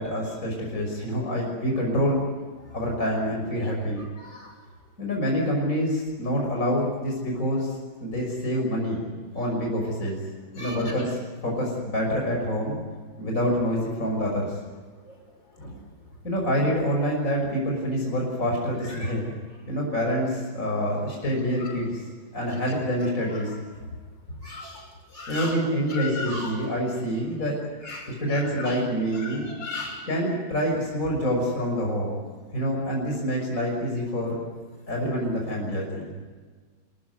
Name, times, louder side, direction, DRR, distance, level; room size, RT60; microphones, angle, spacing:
voice 1, 0.0-2.2 2.7-4.0 5.0-7.7 8.0-9.0 9.3-10.2 10.5-11.1 11.4-12.8 13.2-14.5 16.2-19.3 19.7-22.0 22.3-23.5 25.3-27.6 28.2-29.5 30.1-32.2 32.5-34.4 34.9-36.1, equal, 40° left, -1 dB, 6.3 m, -26 dB
voice 2, 3.6-4.5 10.6-11.1 15.0-15.2 15.5-15.8 18.8-19.2 21.3-21.8 23.3-23.6 24.4-25.6 25.9-26.7 27.4-27.5 27.8-30.1, left 3 dB, 65° left, 2 dB, 6.6 m, -38 dB
28.5 x 15.0 x 9.5 m, 1.5 s
omnidirectional pair, 2.1 m